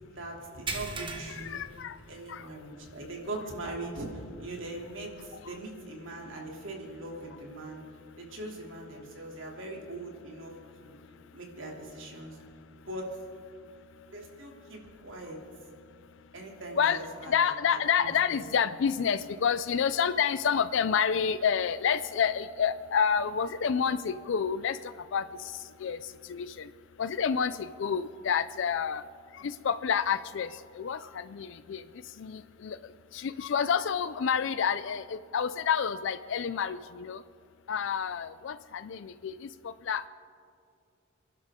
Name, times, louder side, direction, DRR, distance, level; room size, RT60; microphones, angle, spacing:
voice 1, 0.1-1.6 2.1-7.8 8.2-10.5 10.8-10.9 11.3-12.4 12.9-13.2 14.1-15.4 16.3-18.4, right 2 dB, 70° right, 0 dB, 2.9 m, -41 dB
sound 1, 0.7-2.5 2.9-3.1 3.6-3.7 5.3-5.4, right 3 dB, 25° right, 1.3 m, -39 dB
voice 2, 1.3-2.0 2.3-2.5 2.7-2.8 5.3-5.5 7.8-7.9 10.8-10.9 11.1-11.2 12.4-12.5 16.8-26.7 27.0-29.0 29.3-37.2 37.7-40.1, left 7 dB, 65° left, 13 dB, 0.4 m, -29 dB
28.5 x 11.5 x 3.7 m, 2.5 s
head